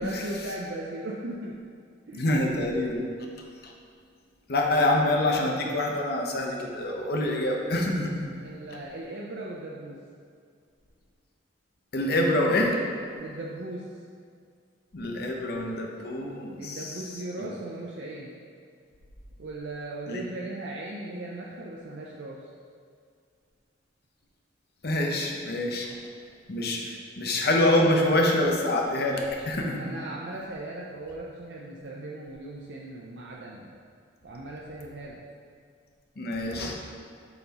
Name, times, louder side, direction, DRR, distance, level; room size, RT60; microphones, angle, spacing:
voice 1, 0.0-1.5 2.1-2.3 8.4-10.0 13.1-13.8 16.6-18.3 19.4-22.5 26.6-26.9 29.7-33.7 34.2-35.2, right 2 dB, 65° right, -3 dB, 0.6 m, -38 dB
voice 2, 2.2-3.0 3.6-3.7 4.5-8.3 11.9-12.8 14.9-16.9 17.4-17.5 20.1-20.2 24.8-25.9 26.5-30.0 36.2-36.7, left 1 dB, 55° left, 0 dB, 0.8 m, -26 dB
7.7 x 5.6 x 2.9 m, 2.2 s
head